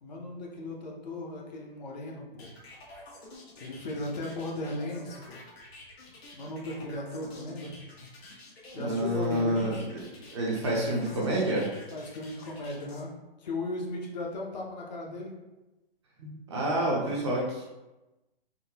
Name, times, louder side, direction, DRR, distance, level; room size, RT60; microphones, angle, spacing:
voice 1, 0.0-2.5 3.6-5.4 6.3-7.8 8.7-9.9 11.9-13.1 13.4-15.4, left 2 dB, 45° left, -1 dB, 0.6 m, -37 dB
sound 1, 2.4-13.0, left 2 dB, 90° left, 1.0 m, -49 dB
voice 2, 8.7-10.0 10.3-11.7 16.2-17.6, right 1 dB, 30° right, -3 dB, 0.5 m, -28 dB
3.6 x 2.1 x 2.8 m, 1.0 s
hypercardioid pair, 160°, 30 cm